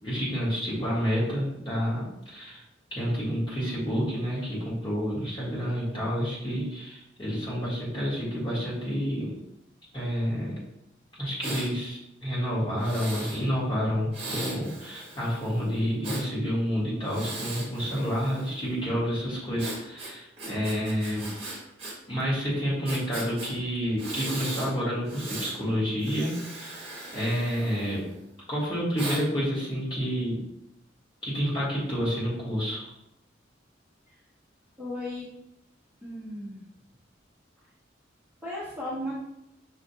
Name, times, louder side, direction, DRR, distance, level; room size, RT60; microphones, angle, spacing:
voice 1, 0.0-2.6 2.9-9.3 9.9-10.6 11.2-21.3 22.1-26.9 27.1-28.0 28.5-30.4 31.2-32.9, equal, 25° left, -7 dB, 1.4 m, -29 dB
Breathing, 11.4-11.7 12.8-13.4 14.1-16.3 17.0-18.7 19.6-21.9 22.2-22.3 22.9-23.5 24.0-24.7 25.1-25.6 26.0-28.2 29.0-29.2, right 2 dB, 30° right, 1.2 m, -38 dB
voice 2, 34.8-35.3 36.0-36.6 38.4-39.1, left 1 dB, 5° right, -9 dB, 0.9 m, -35 dB
6.2 x 2.4 x 2.7 m, 0.82 s
head